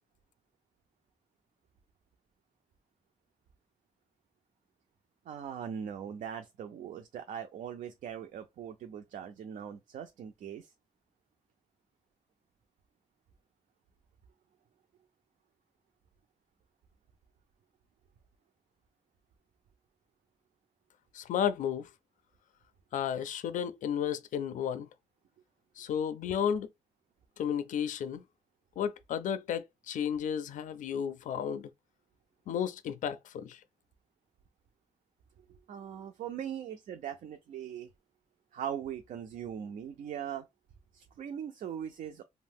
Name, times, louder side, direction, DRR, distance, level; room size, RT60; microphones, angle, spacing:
voice 1, 5.3-10.7 35.7-37.9 38.5-40.5 40.9-42.2, right 8 dB, 75° right, 0.4 m, -40 dB
voice 2, 21.1-21.9 22.9-24.9 25.8-26.7 27.4-28.2 28.8-31.7 32.5-33.6, left 8 dB, 75° left, 0.4 m, -33 dB
2.6 x 2.0 x 3.5 m
wide cardioid pair, 165°, 13 cm